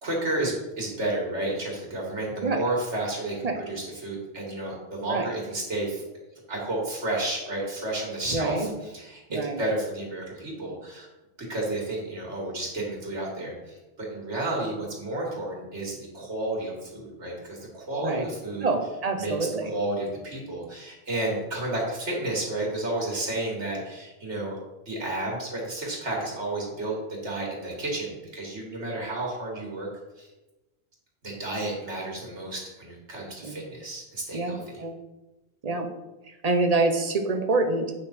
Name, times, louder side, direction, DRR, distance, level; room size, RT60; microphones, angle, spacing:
voice 1, 0.0-6.0 6.5-11.1 11.5-18.7 19.2-19.3 19.6-24.6 24.9-29.9 30.2-30.3 31.2-34.8, right 2 dB, 85° right, -3 dB, 2.6 m, -31 dB
voice 2, 8.3-8.7 9.3-9.6 18.0-18.2 18.6-19.7 33.4-33.6 34.3-34.9 35.6-35.9 36.4-37.9, right 3 dB, 35° right, 5 dB, 0.9 m, -26 dB
8.7 x 5.9 x 4.4 m, 1.1 s
omnidirectional pair, 1.1 m